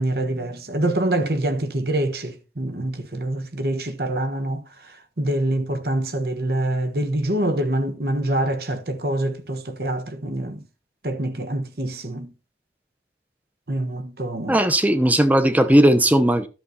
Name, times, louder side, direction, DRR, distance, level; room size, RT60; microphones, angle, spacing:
voice 1, 0.0-4.6 5.2-10.6 11.0-12.3 13.7-14.6, right 1 dB, 60° right, 1.4 m, -25 dB
voice 2, 14.5-16.5, right 1 dB, 10° right, 0.9 m, -17 dB
11.5 x 6.7 x 4.2 m
head